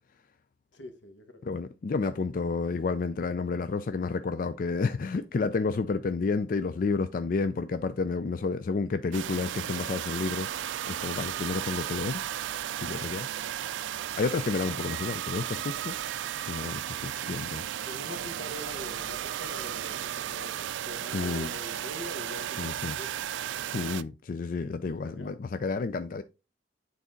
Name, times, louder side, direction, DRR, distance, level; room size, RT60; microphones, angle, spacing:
voice 1, 0.7-1.5 17.2-17.5 17.8-23.2 24.8-25.3, left 1 dB, 90° left, 1.4 m, -44 dB
voice 2, 1.4-12.2 12.8-13.3 14.2-15.9 16.5-17.6 21.1-21.5 22.6-23.0 23.7-26.2, left 4 dB, 50° left, 0.4 m, -30 dB
sound 1, 9.1-24.0, right 11 dB, 90° right, 0.3 m, -34 dB
8.6 x 4.1 x 3.8 m
head